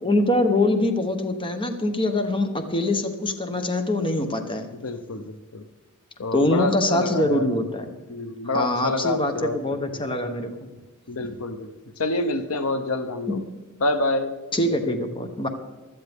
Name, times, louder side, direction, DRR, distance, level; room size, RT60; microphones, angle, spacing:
voice 1, 0.0-4.7 6.3-7.9 8.5-10.5 13.3-13.4 14.5-15.5, left 1 dB, 25° left, 6 dB, 1.0 m, -24 dB
voice 2, 4.7-5.7 6.2-7.5 8.1-10.0 11.1-13.4 13.8-14.3, left 2 dB, 80° left, 10 dB, 0.8 m, -27 dB
16.0 x 12.0 x 3.6 m, 1.2 s
head